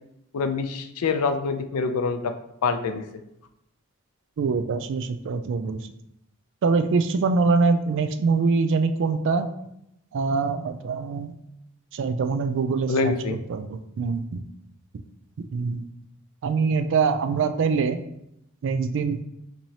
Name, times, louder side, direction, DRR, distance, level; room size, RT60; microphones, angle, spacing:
voice 1, 0.3-2.3 2.6-3.0 12.9-13.4, left 4 dB, 90° left, 8 dB, 0.4 m, -25 dB
voice 2, 4.4-5.8 6.6-9.5 10.1-11.3 11.9-14.4 15.4-15.9 16.4-18.0 18.6-19.3, right 4 dB, 60° right, 9 dB, 0.3 m, -24 dB
4.6 x 2.7 x 2.8 m, 0.79 s
head